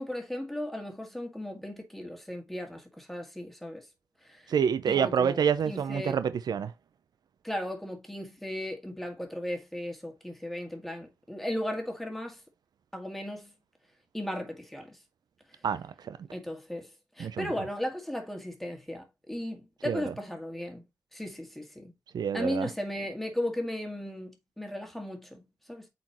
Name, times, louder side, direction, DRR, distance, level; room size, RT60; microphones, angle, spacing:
voice 1, 0.0-3.9 4.2-4.5 4.9-6.2 7.4-12.4 12.9-13.5 14.1-15.0 16.3-20.8 21.1-21.9 22.3-25.9, left 1 dB, 5° left, 2.0 m, -36 dB
voice 2, 4.5-6.7 15.6-16.2 17.2-17.5 19.9-20.1 22.1-22.7, right 7 dB, 80° right, 0.6 m, -27 dB
8.1 x 4.3 x 3.0 m
wide cardioid pair, 110°, 7 cm